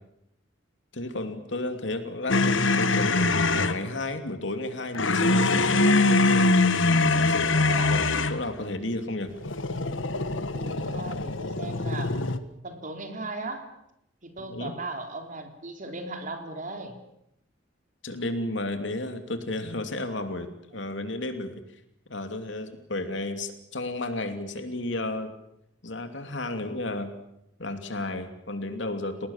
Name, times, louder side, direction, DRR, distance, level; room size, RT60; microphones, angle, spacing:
voice 1, 0.9-5.8 7.2-9.3 14.4-14.7 18.0-20.5 20.7-21.6 22.1-25.3 25.8-27.1 27.6-29.3, left 2 dB, 70° left, 7 dB, 2.9 m, -33 dB
sound 1, 2.3-3.8 4.9-8.4 9.4-12.4, left 3 dB, 90° left, 1.5 m, -23 dB
voice 2, 6.9-7.9 10.5-12.2 12.6-13.6 14.2-17.0, right 2 dB, 45° right, 5 dB, 3.6 m, -37 dB
30.0 x 19.0 x 7.4 m, 0.79 s
head